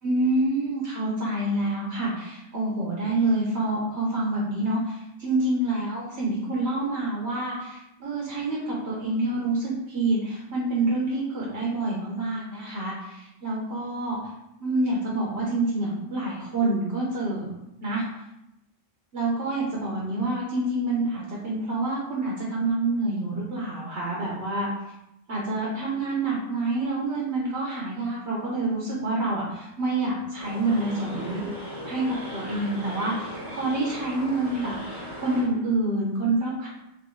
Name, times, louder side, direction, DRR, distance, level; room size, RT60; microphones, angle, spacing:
voice 1, 0.0-14.2 14.6-17.5 17.8-18.0 19.1-24.7 25.3-31.4 31.9-36.7, right 2 dB, 60° right, -4 dB, 1.2 m, -27 dB
sound 1, 30.4-35.5, equal, 15° right, 1.1 m, -38 dB
3.8 x 3.6 x 3.8 m, 0.88 s
omnidirectional pair, 1.3 m